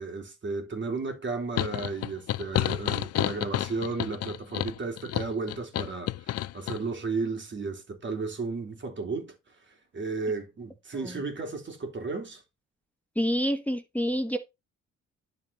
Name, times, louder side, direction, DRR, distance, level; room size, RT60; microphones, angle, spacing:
voice 1, 0.0-9.5 9.9-12.4, right 4 dB, 40° right, 3.5 m, -34 dB
sound 1, 1.6-6.8, left 13 dB, 55° left, 0.5 m, -30 dB
voice 2, 13.1-14.4, equal, 5° left, 1.2 m, -28 dB
11.5 x 4.9 x 4.3 m
cardioid pair, 90°, 30 cm